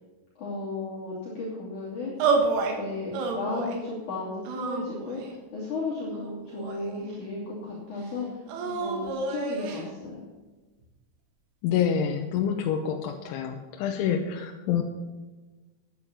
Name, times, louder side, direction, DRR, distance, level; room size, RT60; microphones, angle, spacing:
voice 1, 0.4-2.1 2.8-10.2, left 3 dB, 45° left, -7 dB, 3.9 m, -34 dB
sound 1, 2.2-2.8 3.1-3.8 4.5-5.4 6.1-7.1 8.5-9.8, right 4 dB, 85° right, 4.3 m, -29 dB
voice 2, 11.6-14.8, left 8 dB, 85° left, 3 dB, 3.2 m, -27 dB
11.0 x 10.0 x 7.5 m, 1.3 s
omnidirectional pair, 5.6 m